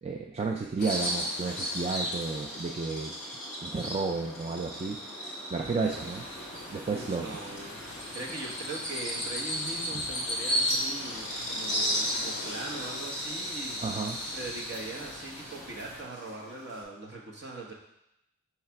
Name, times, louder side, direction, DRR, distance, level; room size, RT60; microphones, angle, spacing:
voice 1, 0.0-3.1 3.6-5.0 5.5-6.3 6.5-7.4 13.8-14.2, right 4 dB, 30° right, 2 dB, 0.3 m, -32 dB
sound 1, 0.8-15.9, left 4 dB, 40° left, 0.4 m, -49 dB
Bird vocalization bird call bird song, 0.8-16.8, equal, ahead, 1.6 m, -35 dB
sound 2, 5.8-16.0, right 1 dB, 80° right, 2.2 m, -48 dB
voice 2, 6.9-14.0 14.2-17.7, right 2 dB, 50° right, -1 dB, 1.2 m, -41 dB
5.8 x 3.2 x 5.8 m, 0.82 s
head